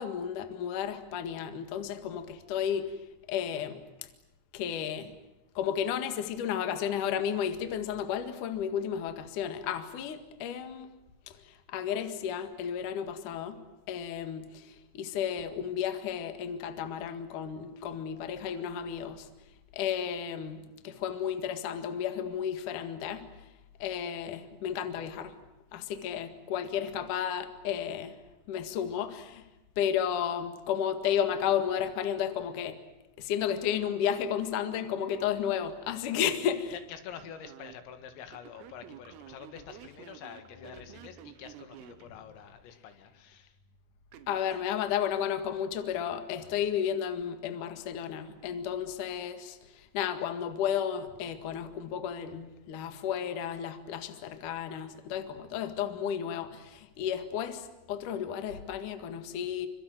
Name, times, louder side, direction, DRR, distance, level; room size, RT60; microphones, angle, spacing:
voice 1, 0.0-2.9 3.3-3.8 4.5-5.1 5.5-10.9 11.3-13.6 13.9-19.3 19.7-23.2 23.8-25.3 25.7-28.2 28.5-29.4 29.8-32.8 33.2-36.7 44.3-59.7, left 9 dB, 55° left, 2.5 m, -33 dB
Telephone, 33.7-36.4 37.1-37.8 38.3-42.1 44.1-44.7, right 10 dB, 85° right, 4.2 m, -51 dB
voice 2, 36.7-43.6, left 8 dB, 80° left, 4.6 m, -47 dB
27.5 x 25.0 x 8.0 m
omnidirectional pair, 6.0 m